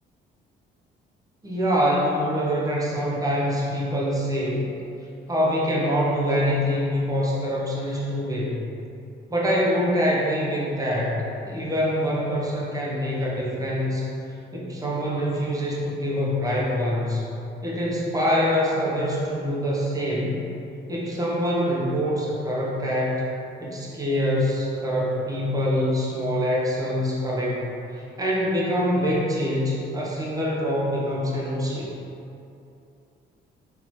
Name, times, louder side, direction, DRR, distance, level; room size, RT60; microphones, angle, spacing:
voice 1, 1.4-4.7 5.3-8.7 9.3-14.1 14.5-17.3 17.6-20.4 20.9-23.2 23.6-31.9, equal, 20° right, -5 dB, 0.8 m, -25 dB
3.9 x 2.9 x 3.1 m, 2.7 s
cardioid pair, 90°, 20 cm